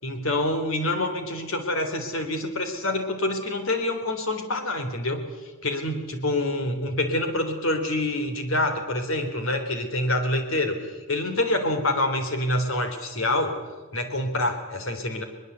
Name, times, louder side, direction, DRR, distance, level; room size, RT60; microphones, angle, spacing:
voice 1, 0.0-5.3 5.6-13.5 13.9-15.2, left 1 dB, 85° left, 6 dB, 3.6 m, -26 dB
22.0 x 21.0 x 8.2 m, 1.2 s
head